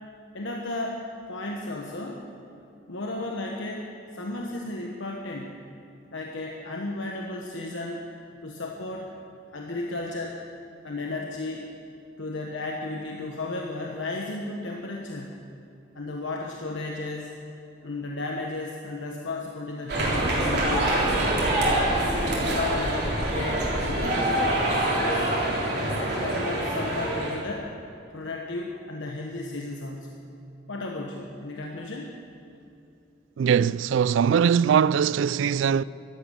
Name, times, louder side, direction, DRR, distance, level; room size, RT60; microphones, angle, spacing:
voice 1, 0.3-1.0 1.3-2.2 2.9-3.9 4.1-5.6 6.1-8.0 8.4-9.1 9.5-10.4 10.8-11.7 12.2-15.4 15.9-17.3 17.8-21.1 21.5-21.9 22.4-25.3 25.8-27.7 28.1-30.2 30.7-32.1, left 2 dB, 80° left, 1.2 m, -34 dB
sound 1, 19.9-27.4, right 1 dB, 60° right, 3.6 m, -25 dB
voice 2, 33.4-35.8, right 7 dB, 80° right, 0.3 m, -21 dB
13.0 x 11.5 x 8.0 m
head